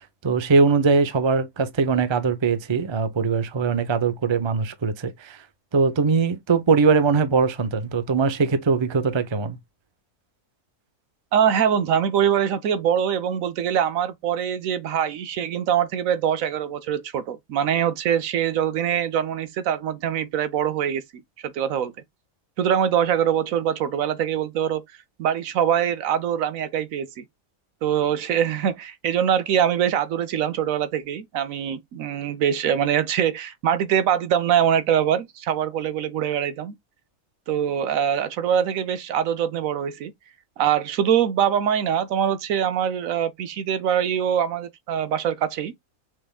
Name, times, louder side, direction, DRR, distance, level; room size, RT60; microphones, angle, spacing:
voice 1, 0.2-5.4 5.7-9.6, right 5 dB, 30° right, 0.5 m, -21 dB
voice 2, 11.3-21.0 21.4-21.9 22.6-24.8 25.2-27.2 27.8-36.7 37.5-40.1 40.6-45.7, right 9 dB, 75° right, 1.1 m, -23 dB
6.0 x 3.5 x 2.3 m
omnidirectional pair, 1.5 m